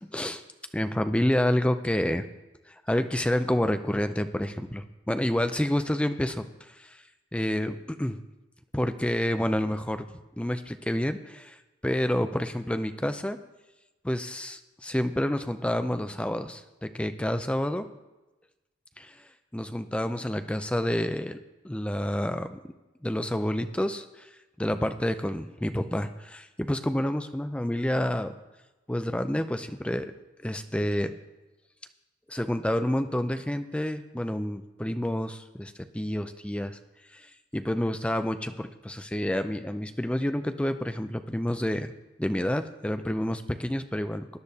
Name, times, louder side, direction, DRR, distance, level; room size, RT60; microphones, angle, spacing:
voice 1, 0.1-0.4 0.7-2.2 2.7-7.0 7.3-8.2 8.7-10.1 10.4-11.6 11.8-13.4 14.0-17.9 19.0-19.2 19.5-21.4 21.6-22.7 23.0-24.3 24.6-28.3 28.9-30.1 30.4-31.1 32.3-36.8 37.1-41.9 42.2-44.3, left 1 dB, 5° left, 9 dB, 0.4 m, -29 dB
19.5 x 10.0 x 2.8 m, 1.1 s
head